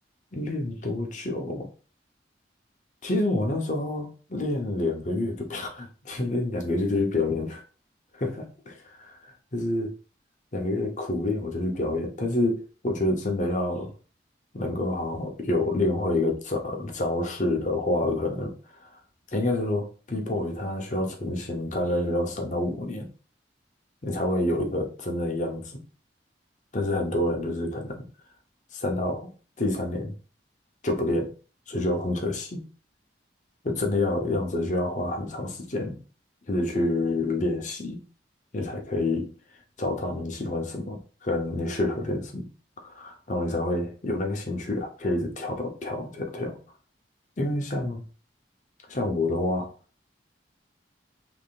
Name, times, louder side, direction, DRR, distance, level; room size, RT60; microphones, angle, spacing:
voice 1, 0.3-1.7 3.0-7.6 8.1-9.9 10.5-13.9 14.5-18.5 18.8-19.0 19.3-23.1 24.0-25.8 26.7-27.9 28.7-29.3 29.6-30.1 30.8-31.3 31.7-32.6 33.6-36.0 36.5-38.0 38.5-39.3 39.8-42.5 42.8-46.6 47.4-48.1 48.9-49.7, left 2 dB, 40° left, 2 dB, 0.8 m, -28 dB
3.6 x 3.4 x 2.4 m, 0.37 s
head